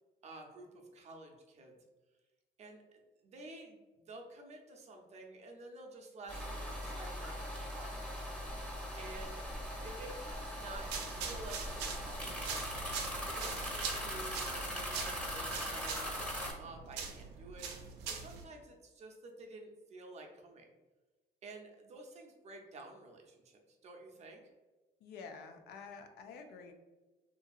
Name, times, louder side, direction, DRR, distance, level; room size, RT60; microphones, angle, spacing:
voice 1, 0.2-1.8 2.6-8.0 9.0-9.4 9.8-12.6 13.2-17.7 18.0-20.7 21.4-24.4, right 2 dB, 40° right, 2 dB, 0.6 m, -51 dB
sound 1, 6.3-16.5, equal, 5° left, 0.7 m, -40 dB
sound 2, 10.8-18.4, right 6 dB, 90° right, 0.5 m, -43 dB
voice 2, 25.0-26.7, left 5 dB, 75° left, 5 dB, 0.4 m, -49 dB
2.7 x 2.6 x 2.3 m, 1.2 s
cardioid pair, 110°, 17 cm